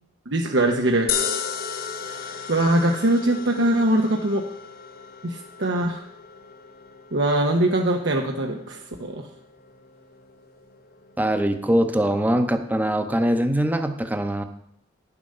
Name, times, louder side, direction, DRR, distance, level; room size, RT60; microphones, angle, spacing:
voice 1, 0.3-1.1 2.1-4.4 5.2-6.0 7.1-9.2, right 1 dB, 85° right, 1 dB, 1.0 m, -22 dB
sound 1, 1.1-13.4, left 7 dB, 55° left, 1.0 m, -36 dB
voice 2, 11.2-14.4, right 1 dB, 10° right, 7 dB, 0.8 m, -22 dB
9.8 x 7.1 x 6.6 m, 0.73 s
head